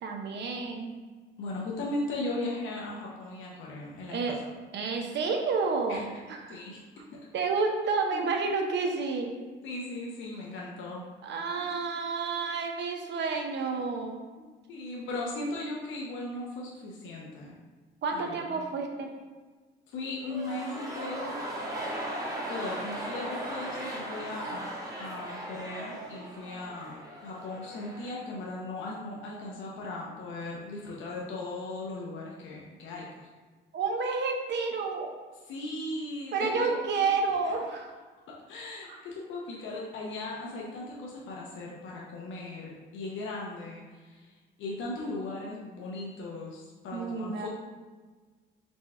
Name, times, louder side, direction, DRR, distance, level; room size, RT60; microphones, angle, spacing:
voice 1, 0.0-1.0 4.1-4.4 4.7-6.6 7.3-9.4 11.2-14.2 18.0-19.1 33.7-35.1 36.3-37.9 38.9-39.0 46.9-47.5, right 4 dB, 65° right, 2 dB, 0.7 m, -30 dB
voice 2, 1.4-4.3 5.9-6.0 6.5-6.8 8.1-8.3 9.6-11.0 11.6-11.8 14.4-17.6 18.1-18.6 19.9-21.4 22.5-24.6 25.0-33.3 35.5-36.8 37.5-37.6 38.5-47.5, left 2 dB, 75° left, -3 dB, 0.8 m, -38 dB
sound 1, 20.2-28.3 28.5-28.6, right 1 dB, 15° right, 1.1 m, -38 dB
4.4 x 2.3 x 4.2 m, 1.4 s
cardioid pair, 90°, 20 cm